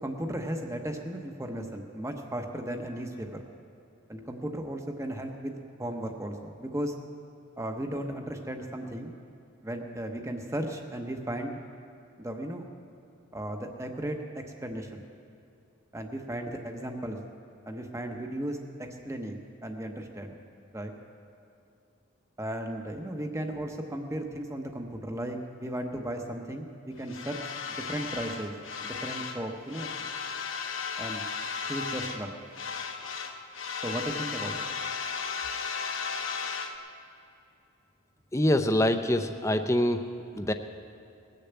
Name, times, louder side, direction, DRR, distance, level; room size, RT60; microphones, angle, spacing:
voice 1, 0.0-3.4 4.1-6.9 7.6-9.1 9.6-11.6 12.2-12.7 13.3-15.0 15.9-17.2 17.7-20.3 20.7-20.9 22.4-28.5 28.8-29.9 31.0-31.2 31.7-32.4 33.8-34.5, right 1 dB, 15° right, 4 dB, 0.8 m, -35 dB
sound 1, 27.1-29.4 29.7-32.3 32.5-36.8, left 5 dB, 65° left, 1.0 m, -35 dB
voice 2, 38.3-40.1 40.3-40.5, left 1 dB, 15° left, 8 dB, 0.5 m, -25 dB
19.5 x 6.8 x 8.0 m, 2.6 s
head